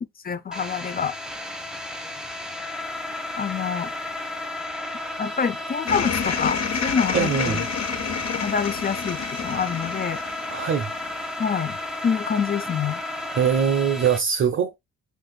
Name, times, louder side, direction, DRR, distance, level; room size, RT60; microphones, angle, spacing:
voice 1, 0.2-1.1 3.4-3.9 5.2-7.6 8.3-10.2 11.4-11.8 12.0-13.0, left 6 dB, 30° left, 0.5 m, -26 dB
sound 1, 0.5-14.2, left 1 dB, ahead, 1.0 m, -33 dB
sound 2, 5.9-11.3, left 6 dB, 60° left, 1.2 m, -29 dB
voice 2, 7.1-7.7 10.5-10.9 13.3-14.8, right 7 dB, 45° right, 0.7 m, -22 dB
6.7 x 2.6 x 2.2 m
cardioid pair, 90°, 30 cm